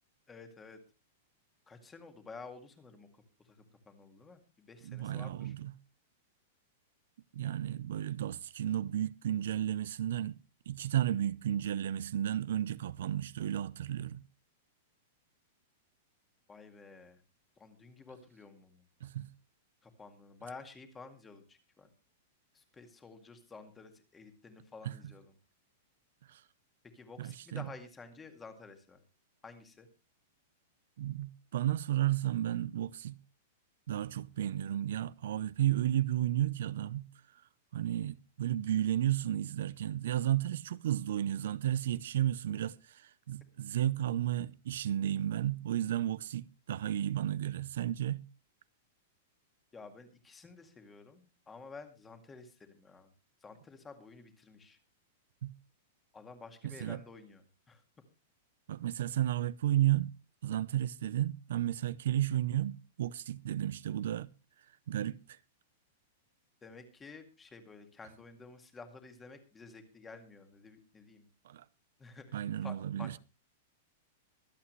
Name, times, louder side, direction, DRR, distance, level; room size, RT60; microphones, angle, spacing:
voice 1, 0.3-0.8 1.7-3.1 3.4-5.5 16.5-17.2 17.6-18.9 19.8-21.9 22.5-25.3 26.9-29.0 29.4-29.9 49.7-53.1 53.4-54.8 56.1-57.8 66.6-71.3 72.0-73.2, left 4 dB, 10° left, 2.0 m, -51 dB
voice 2, 4.8-5.7 7.3-10.4 10.7-14.2 19.0-19.3 24.8-24.9 26.3-26.4 27.2-27.7 31.0-33.2 33.9-37.4 37.7-48.2 55.4-55.5 56.8-57.0 58.7-60.1 60.4-64.3 64.9-65.4 71.4-71.6 72.3-73.2, right 12 dB, 70° right, 0.5 m, -33 dB
24.0 x 8.4 x 3.1 m
supercardioid pair, 170°, 0 cm